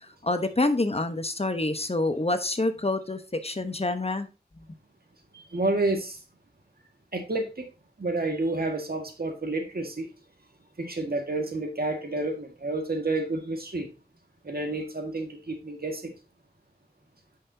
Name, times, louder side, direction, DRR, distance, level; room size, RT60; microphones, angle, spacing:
voice 1, 0.2-4.3, left 2 dB, 40° left, 1.0 m, -27 dB
voice 2, 5.3-6.2 7.1-7.7 8.0-10.1 10.8-13.9 14.4-16.1, right 2 dB, 65° right, 1.8 m, -30 dB
9.3 x 5.7 x 2.8 m
wide cardioid pair, 40°, 17 cm